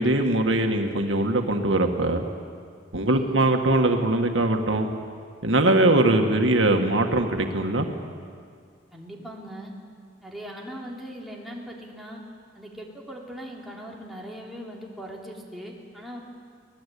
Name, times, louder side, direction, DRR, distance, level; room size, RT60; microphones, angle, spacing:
voice 1, 0.0-2.2 2.9-4.9 5.4-7.9, right 2 dB, 90° right, 4 dB, 1.9 m, -21 dB
voice 2, 3.0-3.4 8.9-9.7 10.2-12.2 12.6-16.2, equal, ahead, -3 dB, 3.5 m, -40 dB
24.5 x 19.5 x 8.6 m, 2.1 s
head